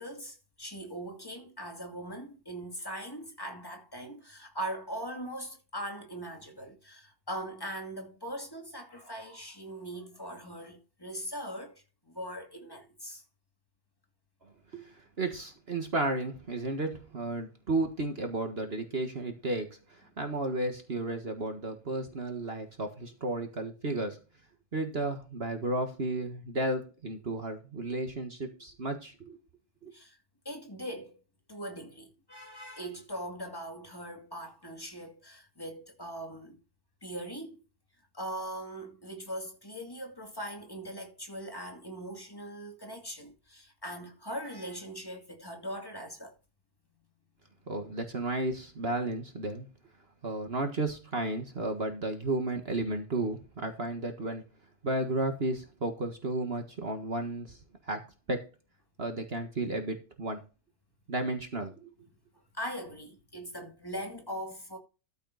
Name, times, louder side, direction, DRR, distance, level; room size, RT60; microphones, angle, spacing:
voice 1, 0.0-13.2 29.9-30.2 30.4-31.2 31.5-36.6 37.0-37.6 38.1-46.3 62.5-64.8, right 1 dB, 15° left, 2.4 m, -40 dB
voice 2, 14.7-24.2 24.7-29.4 29.8-29.9 47.7-49.7 50.2-54.4 54.8-57.6 57.9-58.0 58.3-58.5 59.0-60.4 61.1-61.9, right 2 dB, 40° right, 1.7 m, -33 dB
13.5 x 5.9 x 4.0 m
omnidirectional pair, 1.6 m